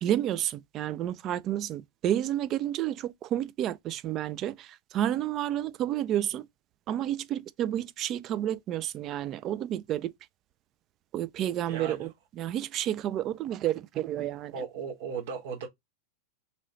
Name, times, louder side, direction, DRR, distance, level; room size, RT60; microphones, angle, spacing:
voice 1, 0.0-6.4 6.9-10.1 11.1-12.1 12.4-14.5, right 11 dB, 35° right, 0.3 m, -30 dB
voice 2, 11.7-12.1 14.5-15.7, right 6 dB, 60° right, 1.1 m, -36 dB
3.0 x 2.9 x 3.9 m
figure-of-eight pair, 95°, 0 cm